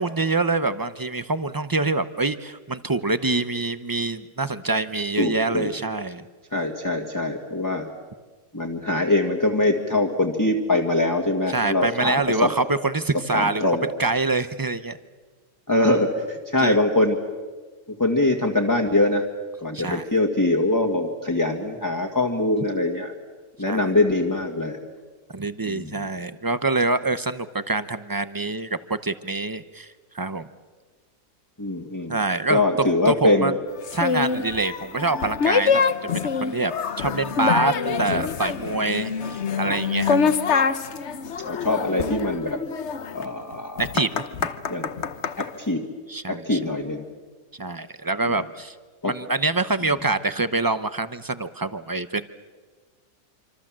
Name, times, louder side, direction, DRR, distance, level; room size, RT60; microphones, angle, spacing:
voice 1, 0.0-6.2 11.5-13.6 14.0-15.0 16.6-16.8 19.7-20.1 23.7-23.8 25.3-29.9 30.1-30.5 32.1-32.6 33.1-33.5 33.9-35.8 36.1-36.7 37.0-40.3 43.8-44.2 46.1-46.6 47.6-48.8 49.0-52.3, right 3 dB, 30° right, 12 dB, 0.4 m, -25 dB
voice 2, 5.2-5.7 6.5-7.9 8.5-12.5 13.3-13.9 15.7-17.2 18.0-19.2 19.6-23.1 23.6-24.8 25.6-26.1 31.6-32.2 32.5-33.5 41.4-42.6 43.1-43.8 44.7-44.9 45.4-45.8 46.3-47.0 49.0-49.1, left 2 dB, 10° left, 1 dB, 1.8 m, -23 dB
sound 1, 33.8-45.5, left 6 dB, 50° left, 1.2 m, -25 dB
27.0 x 26.0 x 7.5 m, 1.4 s
omnidirectional pair, 1.6 m